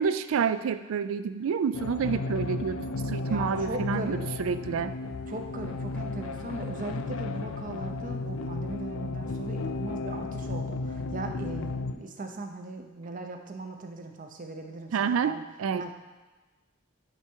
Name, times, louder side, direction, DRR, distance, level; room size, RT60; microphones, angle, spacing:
voice 1, 0.0-4.9 14.9-15.9, right 6 dB, 70° right, 13 dB, 0.3 m, -29 dB
sound 1, 1.7-11.9, left 3 dB, 75° left, 0.5 m, -34 dB
voice 2, 3.2-4.2 5.3-15.4 15.7-15.9, right 2 dB, 40° right, 4 dB, 0.7 m, -38 dB
8.9 x 3.4 x 4.6 m, 1.2 s
head